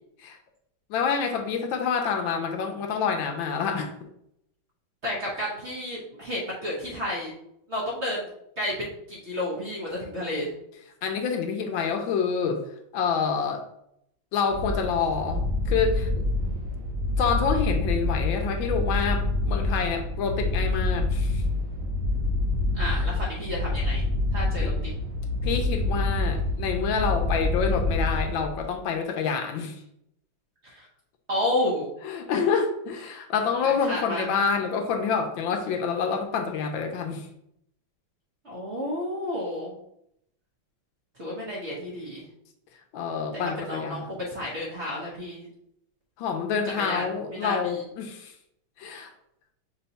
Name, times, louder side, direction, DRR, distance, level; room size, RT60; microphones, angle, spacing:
voice 1, 0.9-3.9 11.0-12.6 12.9-13.7 14.3-16.1 17.2-21.4 22.8-23.0 24.6-24.7 25.4-29.8 32.0-37.3 42.9-44.1 46.2-48.3 48.8-49.1, left 6 dB, 75° left, 4 dB, 1.3 m, -27 dB
voice 2, 5.0-7.3 7.7-8.3 8.6-10.5 22.7-24.1 24.3-24.9 30.6-30.9 31.3-31.9 33.6-34.2 38.4-39.7 41.2-42.3 43.4-45.5 46.8-47.0 47.3-47.9, left 1 dB, 45° right, -5 dB, 0.9 m, -31 dB
sound 1, 14.5-28.8, left 2 dB, 65° right, 1.4 m, -27 dB
5.5 x 2.2 x 4.0 m, 0.75 s
omnidirectional pair, 2.2 m